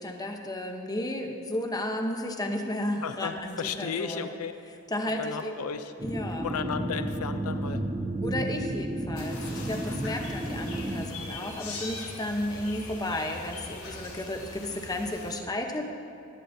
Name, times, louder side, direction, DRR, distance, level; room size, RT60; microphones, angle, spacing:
voice 1, 0.0-4.4 4.9-5.5 6.0-6.5 8.2-15.9, left 1 dB, 15° left, 3 dB, 0.9 m, -33 dB
voice 2, 3.0-4.5 5.1-5.9 6.4-7.8 9.9-10.1, left 6 dB, 85° left, 9 dB, 0.5 m, -34 dB
sound 1, 6.0-11.0, right 1 dB, 15° right, 0.7 m, -32 dB
sound 2, 9.1-15.3, left 2 dB, 65° left, 2.9 m, -41 dB
19.5 x 11.5 x 2.7 m, 2.7 s
head